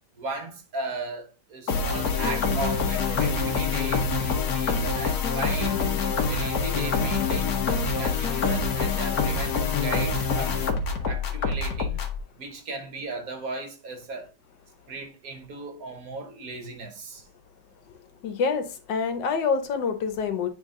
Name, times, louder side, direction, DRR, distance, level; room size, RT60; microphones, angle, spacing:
voice 1, 0.2-5.8 6.2-10.7 11.1-12.0 12.3-14.3 14.9-17.3, right 3 dB, 55° right, 1.5 m, -36 dB
sound 1, 1.7-12.2, left 5 dB, 60° left, 1.3 m, -26 dB
voice 2, 18.2-20.5, left 5 dB, 85° left, 1.7 m, -26 dB
9.3 x 3.6 x 3.7 m
omnidirectional pair, 1.9 m